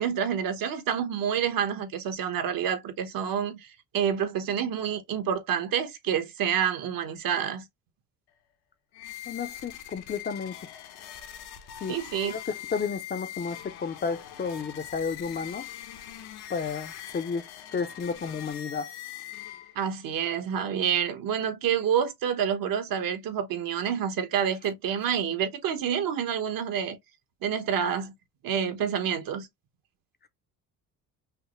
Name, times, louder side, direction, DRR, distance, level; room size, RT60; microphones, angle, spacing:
voice 1, 0.0-7.6 11.9-12.3 19.7-27.0 27.4-28.1 28.4-29.5, right 8 dB, 65° right, 1.1 m, -28 dB
sound 1, 8.9-20.0, left 11 dB, 90° left, 1.1 m, -42 dB
voice 2, 9.3-10.5 11.8-12.0 12.3-15.7 16.5-17.4 17.7-18.9, left 5 dB, 25° left, 0.5 m, -32 dB
5.7 x 2.0 x 3.0 m
cardioid pair, 110°, 37 cm